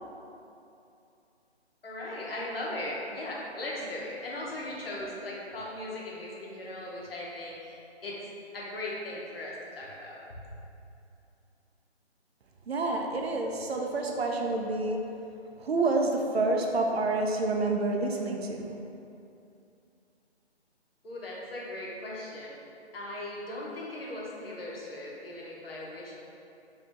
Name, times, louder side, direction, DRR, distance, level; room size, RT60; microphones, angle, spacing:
voice 1, 1.8-8.2 8.5-10.2 21.0-22.6 22.9-26.2, left 1 dB, 60° left, -5 dB, 0.8 m, -38 dB
voice 2, 12.7-15.0 15.6-18.8, right 2 dB, 65° right, 2 dB, 0.5 m, -28 dB
2.8 x 2.7 x 3.3 m, 2.7 s
hypercardioid pair, 170°, 34 cm